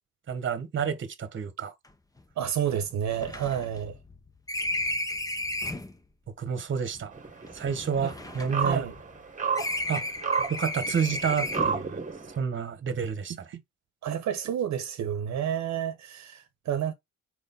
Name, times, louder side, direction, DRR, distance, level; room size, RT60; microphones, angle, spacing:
voice 1, 0.3-1.7 6.4-7.1 7.5-8.9 9.9-10.0 10.5-12.0 12.4-13.3, right 6 dB, 40° right, 1.3 m, -29 dB
sound 1, 1.8-1.9 2.2-2.3 2.7-6.0 6.8-9.2 9.5-11.9, left 1 dB, 10° left, 0.9 m, -34 dB
voice 2, 2.4-4.0 8.0-8.1 8.5-8.9 14.0-16.9, right 9 dB, 65° right, 1.0 m, -30 dB
sound 2, 7.1-12.4, right 6 dB, 25° right, 1.5 m, -32 dB
4.9 x 3.9 x 5.4 m
cardioid pair, 90°, 30 cm